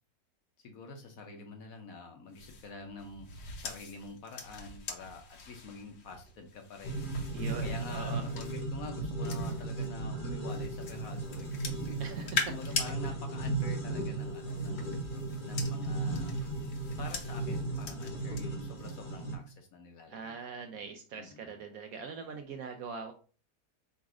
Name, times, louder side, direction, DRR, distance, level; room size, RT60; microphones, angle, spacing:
voice 1, 0.6-3.3 3.5-15.0 15.4-16.4 17.0-20.8 21.2-21.6, left 4 dB, 60° left, 4 dB, 1.0 m, -47 dB
sound 1, 2.3-9.9 10.5-12.9 14.2-18.4 18.8-19.1, left 5 dB, 85° left, 1.7 m, -42 dB
sound 2, 6.8-19.4, right 2 dB, 35° left, 0.9 m, -36 dB
voice 2, 7.3-8.3 11.9-12.8 20.1-23.1, right 5 dB, 70° right, 5 dB, 0.9 m, -42 dB
4.0 x 2.5 x 4.7 m, 0.38 s
omnidirectional pair, 1.9 m